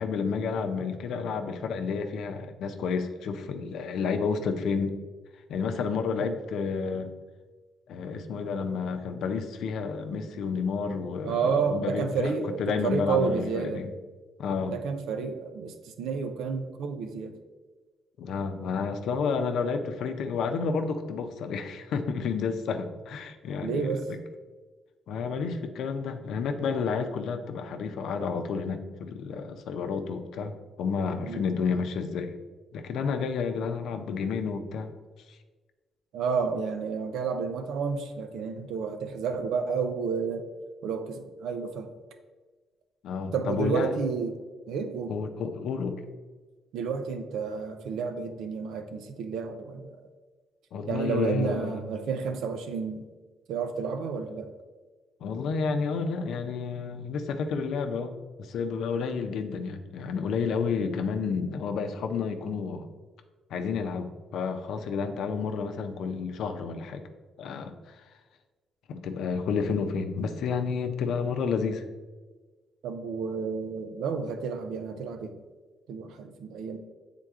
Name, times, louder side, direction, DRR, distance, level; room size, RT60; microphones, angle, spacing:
voice 1, 0.0-4.9 5.5-7.1 7.9-13.9 14.4-14.7 18.2-24.2 25.1-32.3 32.7-34.9 43.0-44.0 45.1-46.0 50.7-51.8 55.2-62.9 63.5-67.0 67.4-68.0 68.9-71.8, left 5 dB, 80° left, 7 dB, 0.6 m, -30 dB
voice 2, 11.2-13.8 14.7-17.4 23.6-24.1 31.3-31.4 36.1-40.5 40.8-41.9 43.3-44.4 44.7-45.1 46.7-49.9 50.9-53.1 53.5-54.5 72.8-75.4 75.9-76.8, right 5 dB, 85° right, 7 dB, 0.6 m, -30 dB
7.7 x 3.7 x 3.6 m, 1.3 s
cardioid pair, 90°, 0 cm